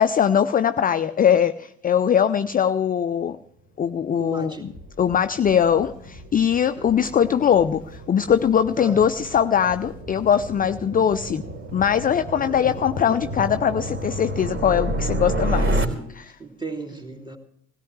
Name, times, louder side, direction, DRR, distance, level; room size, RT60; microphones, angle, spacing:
voice 1, 0.0-3.4 3.8-4.7 5.0-11.4 11.7-15.8 16.1-16.3, left 8 dB, 20° left, 12 dB, 0.5 m, -21 dB
voice 2, 4.2-4.7 6.8-6.9 8.8-9.1 12.4-12.8 16.3-17.4, right 3 dB, 10° right, 2 dB, 3.0 m, -36 dB
sound 1, 4.6-16.2, equal, 85° right, 5.9 m, -46 dB
sound 2, 4.7-15.9, right 1 dB, 30° right, 3.7 m, -30 dB
19.0 x 17.0 x 3.2 m, 0.69 s
figure-of-eight pair, 50°, 39 cm